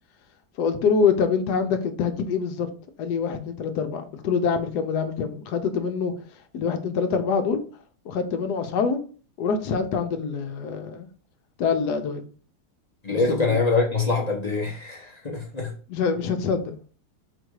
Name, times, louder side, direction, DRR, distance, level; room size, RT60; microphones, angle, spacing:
voice 1, 0.6-2.7 3.0-6.1 6.5-7.6 8.0-9.0 9.4-11.1 11.6-12.2 13.1-13.6 15.9-16.7, left 5 dB, 70° left, 1.2 m, -25 dB
voice 2, 13.0-15.7, left 3 dB, 30° left, 0.8 m, -24 dB
4.4 x 2.6 x 4.6 m
omnidirectional pair, 1.8 m